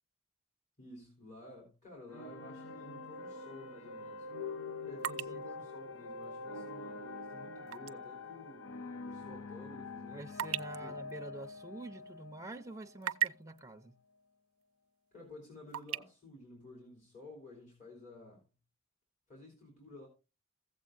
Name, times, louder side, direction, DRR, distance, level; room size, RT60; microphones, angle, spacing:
voice 1, 0.8-4.3 4.9-8.8 9.0-10.2 10.8-11.0 15.1-18.5 19.3-20.1, left 2 dB, 35° left, 3.1 m, -52 dB
sound 1, 2.1-13.3, left 3 dB, 75° left, 0.7 m, -45 dB
sound 2, 2.9-3.1 3.6-8.0 8.4-8.5 9.1-12.2 12.6-13.6 14.6-14.7 15.1-16.0, right 10 dB, 70° right, 0.4 m, -40 dB
voice 2, 10.1-14.0, right 2 dB, 15° right, 0.6 m, -47 dB
15.5 x 7.5 x 2.5 m
head